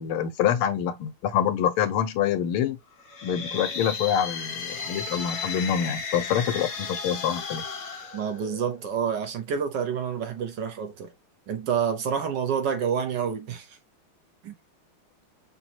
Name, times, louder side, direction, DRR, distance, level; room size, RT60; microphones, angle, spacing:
voice 1, 0.0-2.8 3.2-7.6, left 9 dB, 85° left, 1.7 m, -26 dB
sound 1, 3.0-8.9, left 5 dB, 50° left, 1.4 m, -34 dB
voice 2, 8.1-11.1 11.5-13.8 14.4-14.5, right 7 dB, 65° right, 1.4 m, -28 dB
6.0 x 2.9 x 2.8 m
omnidirectional pair, 2.3 m